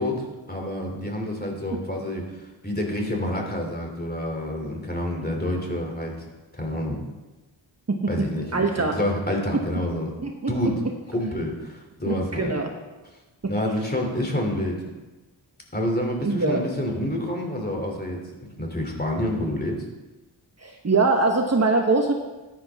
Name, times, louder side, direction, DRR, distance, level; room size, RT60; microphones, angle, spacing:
voice 1, 0.0-6.3 6.5-7.0 8.1-8.5 8.8-10.1 10.5-10.8 11.1-12.5 13.5-14.8 15.7-19.8, left 1 dB, 20° left, 1 dB, 3.0 m, -28 dB
voice 2, 8.5-9.0 10.2-10.7 12.1-12.7 13.4-13.5 16.2-16.6 20.6-22.1, right 3 dB, 35° right, 2 dB, 1.2 m, -23 dB
14.0 x 10.5 x 3.6 m, 1.1 s
cardioid pair, 60°, 45 cm